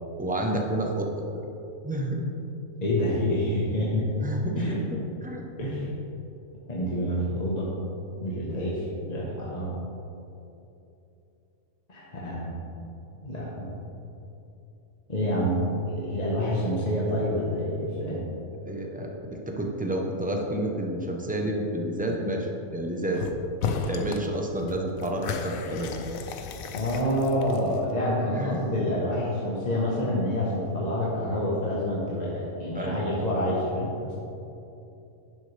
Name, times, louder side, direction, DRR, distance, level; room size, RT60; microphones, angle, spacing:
voice 1, 0.2-1.1 1.3-1.5 1.8-2.3 4.2-5.4 5.7-5.9 18.6-23.2 23.6-25.9 28.3-28.6 32.7-33.0, right 1 dB, 10° right, 1 dB, 0.5 m, -30 dB
voice 2, 2.8-4.0 4.6-4.7 5.6-5.8 6.7-7.7 8.2-9.7 11.9-12.5 13.2-13.8 15.1-18.2 26.7-34.1, equal, 30° left, -6 dB, 1.2 m, -27 dB
sound 1, 23.1-23.3 23.6-24.3 24.6-27.9, left 5 dB, 75° left, 1.1 m, -34 dB
11.0 x 7.1 x 3.4 m, 2.9 s
omnidirectional pair, 1.5 m